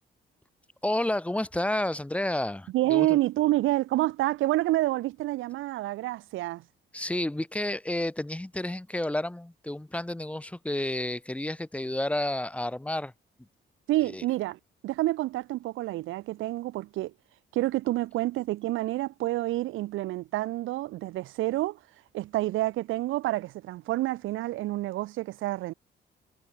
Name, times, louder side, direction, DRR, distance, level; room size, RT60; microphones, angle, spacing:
voice 1, 0.8-3.1 6.9-13.1 14.1-14.2, left 1 dB, 5° left, 0.8 m, -30 dB
voice 2, 2.7-6.6 13.9-17.1 17.5-21.8 22.1-25.7, right 16 dB, 85° right, 0.8 m, -28 dB
cardioid pair, 90°, 20 cm